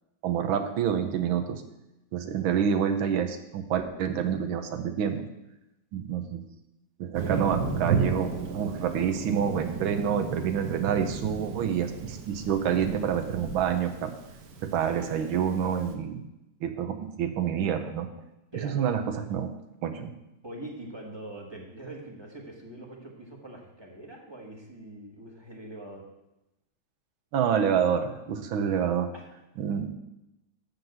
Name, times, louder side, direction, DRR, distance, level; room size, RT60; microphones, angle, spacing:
voice 1, 0.2-1.6 2.1-5.3 5.9-6.4 7.0-14.1 14.6-16.2 16.6-18.1 18.6-19.5 19.8-20.1 27.3-29.1 29.6-29.9, right 8 dB, 75° right, 7 dB, 1.7 m, -27 dB
Thunder, 7.1-15.9, right 5 dB, 55° right, 1.3 m, -34 dB
voice 2, 18.5-18.9 20.4-26.0 29.1-29.3, right 1 dB, 15° right, -1 dB, 1.4 m, -43 dB
12.0 x 4.0 x 7.8 m, 0.92 s
omnidirectional pair, 2.3 m